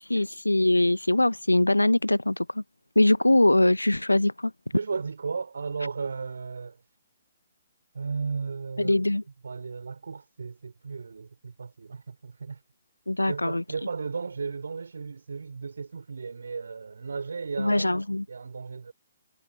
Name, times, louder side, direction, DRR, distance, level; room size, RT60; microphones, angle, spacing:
voice 1, 0.0-2.6 3.0-4.5 8.8-9.2 13.1-13.6 17.6-18.2, left 1 dB, 85° left, 0.9 m, -22 dB
voice 2, 4.7-6.8 7.9-9.0 9.4-12.6 13.3-18.9, right 5 dB, 65° right, 3.4 m, -35 dB
figure-of-eight pair, 125°, 0 cm